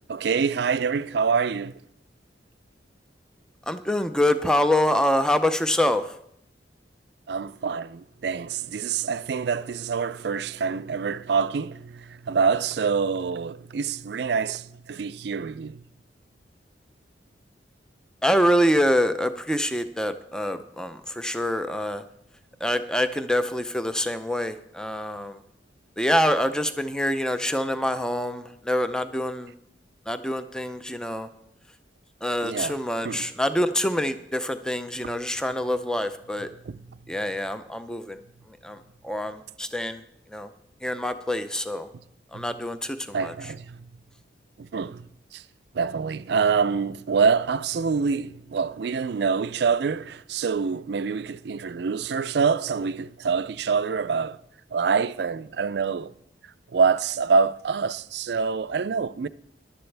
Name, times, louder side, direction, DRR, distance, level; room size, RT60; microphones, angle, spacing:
voice 1, 0.1-1.7 7.3-15.8 32.4-32.8 33.0-33.3 35.0-35.2 36.7-36.8 42.3-42.5 43.1-43.8 44.6-45.0 45.3-45.4 45.7-54.4 54.7-56.1 56.7-59.3, right 5 dB, 65° right, 0.4 m, -26 dB
voice 2, 3.7-6.0 18.2-22.0 22.6-25.4 26.0-29.5 30.1-31.3 32.2-36.5 37.1-38.2 38.6-38.8 39.0-40.0 40.3-40.5 40.8-41.9 42.3-43.3, equal, 5° left, 0.5 m, -25 dB
15.0 x 11.5 x 3.3 m
head